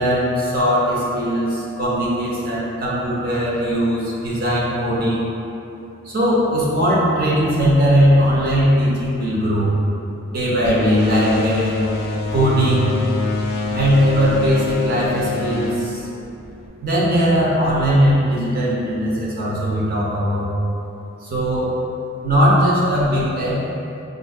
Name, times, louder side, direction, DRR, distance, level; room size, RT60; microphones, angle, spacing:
voice 1, 0.0-5.3 6.0-9.7 10.3-11.8 12.3-13.0 13.7-16.1 16.8-20.5 21.2-21.7 22.2-23.6, equal, 45° right, -6 dB, 0.8 m, -19 dB
sound 1, 10.6-16.7, left 3 dB, 50° left, 0.4 m, -24 dB
4.7 x 2.6 x 2.3 m, 2.7 s
head